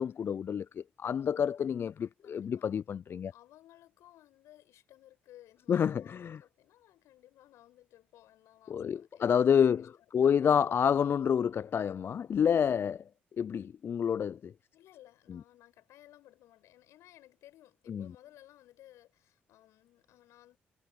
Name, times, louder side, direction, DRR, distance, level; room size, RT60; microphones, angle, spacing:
voice 1, 0.0-3.3 5.7-6.4 8.7-9.9 10.1-13.0 13.4-14.5 15.3-15.4 17.9-18.1, left 8 dB, 45° left, 0.4 m, -28 dB
voice 2, 2.2-2.7 3.3-9.9 10.2-10.5 14.7-20.6, left 14 dB, 70° left, 6.4 m, -58 dB
hypercardioid pair, 40°, 5 cm